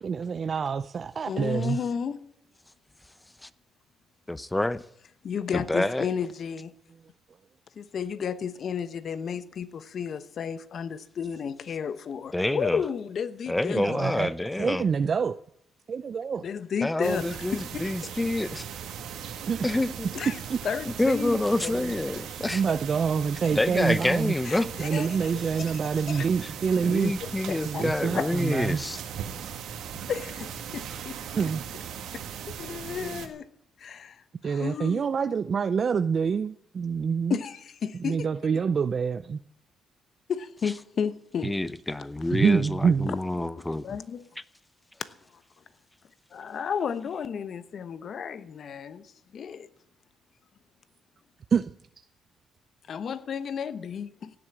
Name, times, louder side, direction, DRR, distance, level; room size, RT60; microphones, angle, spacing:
voice 1, 0.0-1.8 13.7-14.3 14.6-15.4 15.9-16.5 19.5-19.9 20.5-20.6 22.5-24.3 24.8-27.1 27.6-28.8 31.4-31.6 34.4-37.4 37.9-39.4 42.3-43.1 51.5-51.7, right 6 dB, 45° right, 0.5 m, -26 dB
voice 2, 1.3-2.2 5.2-6.7 7.8-14.3 16.4-17.9 20.1-21.9 22.3-22.4 24.4-25.8 26.1-26.3 27.2-27.9 28.1-28.6 30.1-31.2 32.1-33.5 33.8-35.0 35.3-35.4 37.3-38.3 40.3-41.5 43.8-44.3 45.0-45.1 46.3-49.7 52.9-54.4, left 7 dB, 55° left, 1.0 m, -33 dB
voice 3, 4.3-4.8 5.5-6.1 12.3-12.8 13.5-14.8 16.8-18.7 19.6-20.1 20.9-22.6 23.5-24.7 26.8-29.0 41.4-43.8, left 1 dB, 10° left, 0.7 m, -27 dB
sound 1, 17.0-33.3, right 8 dB, 80° right, 1.8 m, -38 dB
16.5 x 7.9 x 8.7 m
cardioid pair, 90°, 0 cm